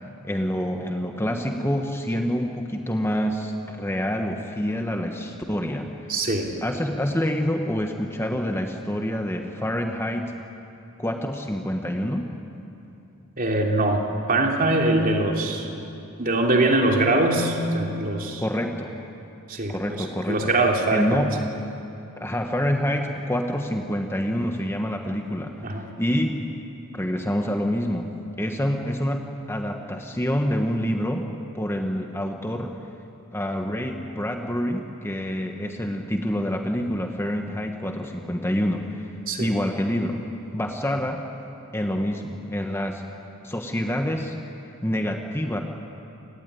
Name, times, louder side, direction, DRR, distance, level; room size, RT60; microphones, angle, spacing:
voice 1, 0.2-5.9 6.6-10.3 11.0-12.3 18.4-18.9 19.7-20.5 20.9-21.3 22.2-26.4 26.9-28.1 28.4-31.3 31.5-32.8 33.3-39.1 39.4-40.2 40.5-41.2 41.7-43.0 43.4-44.4 44.8-45.6, equal, 10° left, 3 dB, 1.3 m, -27 dB
voice 2, 6.1-6.6 13.4-14.0 14.3-15.7 16.2-18.4 19.5-21.2 25.6-25.9 39.3-39.5, right 2 dB, 40° right, 1 dB, 3.1 m, -22 dB
28.0 x 18.5 x 9.9 m, 2.8 s
head